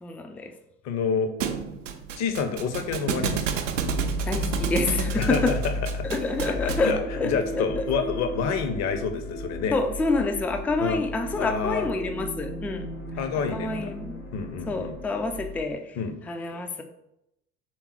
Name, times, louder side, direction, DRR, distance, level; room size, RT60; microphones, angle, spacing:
voice 1, 0.0-0.5 4.3-5.5 6.0-7.9 9.7-12.9 13.3-14.2 14.7-16.0 16.3-16.8, left 3 dB, 5° left, 6 dB, 0.3 m, -28 dB
voice 2, 0.8-1.3 2.2-3.6 5.2-5.7 6.5-7.0 7.2-9.8 10.8-11.0 11.4-11.9 13.2-13.9 14.3-15.0 16.0-16.2, left 6 dB, 45° left, 7 dB, 0.7 m, -28 dB
Thump thud, 1.4-7.0, right 7 dB, 75° right, 0.5 m, -31 dB
sound 1, 3.8-15.6, equal, 90° left, 0.9 m, -34 dB
3.5 x 3.0 x 4.4 m, 0.83 s
figure-of-eight pair, 55°, 38 cm